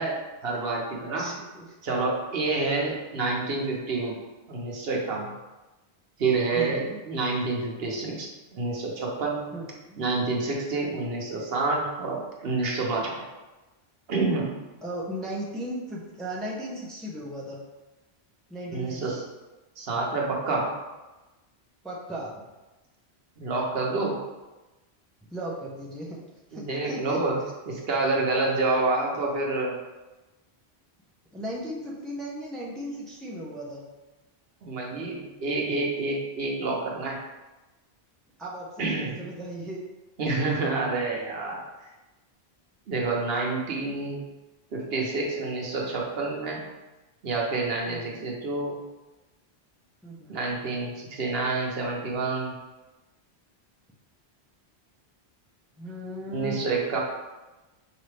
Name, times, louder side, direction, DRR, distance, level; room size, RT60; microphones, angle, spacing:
voice 1, 0.0-1.3 1.8-4.2 4.5-5.3 6.2-9.5 10.0-13.2 14.1-14.6 18.7-19.2 19.8-20.7 23.4-24.2 26.5-29.8 34.6-37.2 38.8-39.2 40.2-41.6 42.9-44.3 44.7-46.6 47.2-48.8 50.3-52.6 56.3-57.0, right 3 dB, 65° right, -2 dB, 1.0 m, -28 dB
voice 2, 1.2-1.7 6.5-7.0 9.5-10.0 14.8-17.6 18.5-19.2 21.8-22.4 25.3-26.2 26.5-27.5 31.3-33.9 38.4-39.8 47.9-48.3 50.0-50.4 55.8-56.6, right 1 dB, ahead, -5 dB, 0.6 m, -36 dB
5.7 x 2.7 x 3.3 m, 1.1 s
omnidirectional pair, 1.1 m